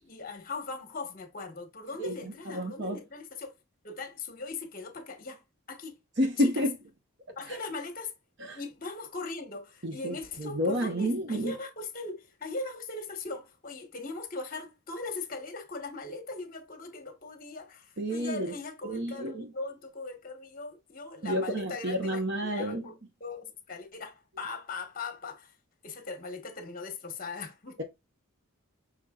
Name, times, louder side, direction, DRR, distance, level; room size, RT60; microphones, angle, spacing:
voice 1, 0.0-3.5 3.8-5.4 5.7-6.0 6.4-6.6 7.4-8.1 8.5-25.5 25.8-27.8, left 3 dB, 40° left, 1.1 m, -39 dB
voice 2, 2.5-3.0 6.2-6.7 7.5-7.6 8.4-8.6 9.8-11.5 18.0-18.5 18.8-19.5 21.2-22.9, equal, 55° right, 0.9 m, -30 dB
6.3 x 3.5 x 2.3 m
head